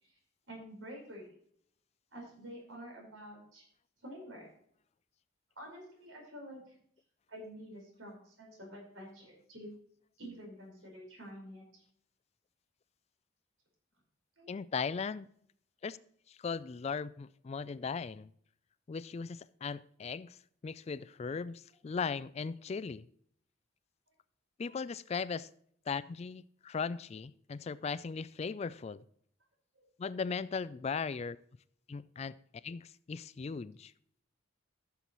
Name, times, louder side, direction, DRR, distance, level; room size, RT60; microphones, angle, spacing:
voice 1, 0.5-1.4 2.1-3.6 4.0-4.5 5.6-6.6 7.3-9.7 10.2-11.8 14.4-14.5 24.7-24.8 29.7-29.8, equal, 85° right, 0 dB, 4.7 m, -48 dB
voice 2, 14.5-15.3 15.8-16.0 16.3-18.3 18.9-23.1 24.6-25.5 25.9-29.0 30.0-31.4 31.9-32.4 32.6-33.9, left 5 dB, 35° left, 17 dB, 0.3 m, -38 dB
14.5 x 7.0 x 3.0 m, 0.64 s
head